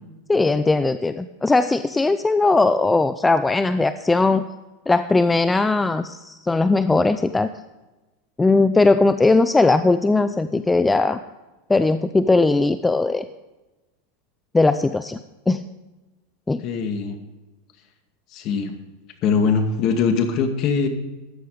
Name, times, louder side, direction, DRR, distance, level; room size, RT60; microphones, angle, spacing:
voice 1, 0.3-4.5 4.9-7.5 8.4-11.2 11.7-13.3 14.5-15.2 15.5-15.6 16.5-16.6, left 3 dB, 10° left, 12 dB, 0.5 m, -19 dB
voice 2, 16.6-17.2 18.3-18.8 19.2-20.9, left 5 dB, 45° left, 6 dB, 2.1 m, -21 dB
14.0 x 10.5 x 5.0 m, 1.1 s
supercardioid pair, 120°, 0 cm